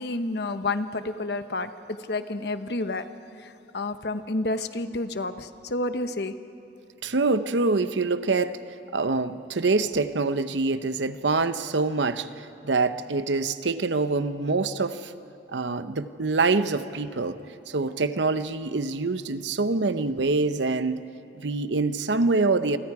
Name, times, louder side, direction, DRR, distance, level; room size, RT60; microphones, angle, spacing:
voice 1, 0.0-1.7 2.1-3.0 3.4-6.3, left 2 dB, 65° left, 10 dB, 1.0 m, -30 dB
voice 2, 7.0-8.6 8.9-12.3 12.6-15.1 15.5-17.4 17.7-21.1 21.4-22.8, right 3 dB, 80° right, 11 dB, 0.8 m, -25 dB
29.0 x 24.5 x 4.8 m, 2.8 s
head